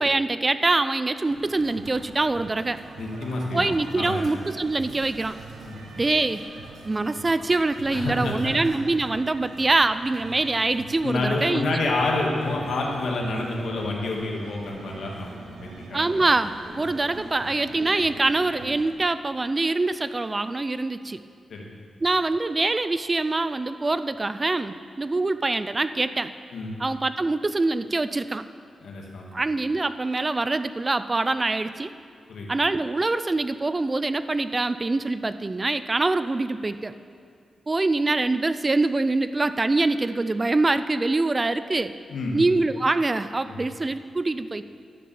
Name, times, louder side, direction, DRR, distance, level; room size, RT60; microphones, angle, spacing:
voice 1, 0.0-2.8 3.5-5.4 5.9-6.4 6.8-11.6 15.9-21.2 22.0-26.3 26.8-28.5 29.3-31.9 32.5-36.9 37.7-41.9 42.3-44.6, right 2 dB, 25° right, 13 dB, 0.3 m, -24 dB
sound 1, 1.3-18.9, right 3 dB, 85° right, 1.1 m, -43 dB
voice 2, 3.0-4.3 5.6-5.8 7.9-8.7 11.0-16.3 21.5-21.7 26.5-26.7 28.8-29.3 32.3-32.5 42.1-42.4 43.5-43.6, left 2 dB, 75° left, -1 dB, 1.9 m, -28 dB
12.0 x 6.4 x 7.0 m, 2.2 s
wide cardioid pair, 110°, 0 cm